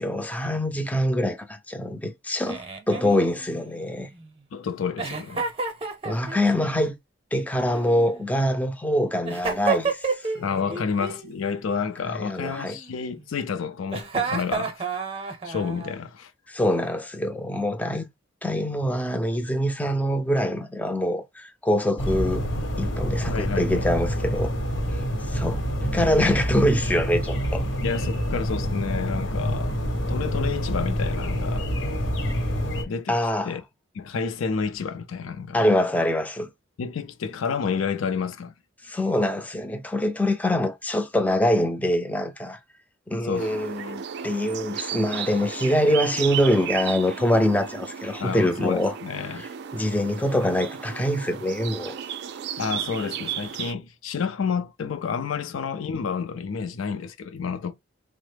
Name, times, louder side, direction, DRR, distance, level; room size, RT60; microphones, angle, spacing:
voice 1, 0.0-4.1 6.0-6.9 7.3-10.8 12.1-12.8 16.5-18.1 18.4-22.4 22.8-24.5 25.3-25.6 25.9-27.6 33.1-33.5 35.5-36.5 38.8-42.6 43.1-48.9 49.4-52.0, left 1 dB, 10° left, 0.4 m, -24 dB
Giggle, 2.5-4.3 5.0-6.6 7.6-8.6 9.2-10.5 10.7-11.3 12.5-13.2 13.9-15.9, right 4 dB, 30° right, 0.7 m, -31 dB
voice 2, 4.5-5.5 6.6-6.7 10.4-14.9 15.3-16.3 23.3-23.9 27.8-29.8 30.1-31.7 32.9-33.2 33.4-33.6 33.9-35.6 36.8-38.5 38.9-39.0 43.2-43.5 43.8-43.9 48.2-49.4 52.6-57.7, left 6 dB, 85° left, 0.4 m, -30 dB
sound 1, 22.0-32.8, equal, 65° left, 1.0 m, -27 dB
sound 2, 43.3-53.7, right 8 dB, 55° right, 0.3 m, -34 dB
3.5 x 2.0 x 3.3 m
head